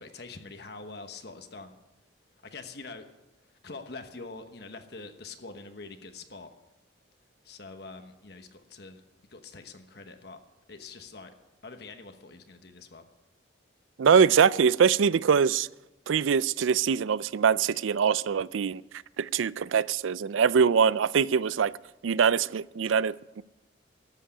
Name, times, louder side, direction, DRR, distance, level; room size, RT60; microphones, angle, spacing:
voice 1, 0.0-1.7 2.4-3.1 3.6-6.5 7.4-9.0 9.3-10.4 10.7-11.3 11.6-13.0, left 3 dB, 55° left, 1.1 m, -44 dB
voice 2, 14.0-15.7 16.1-18.8 19.2-21.7 22.0-23.4, right 6 dB, 85° right, 0.4 m, -23 dB
13.0 x 8.3 x 10.0 m
head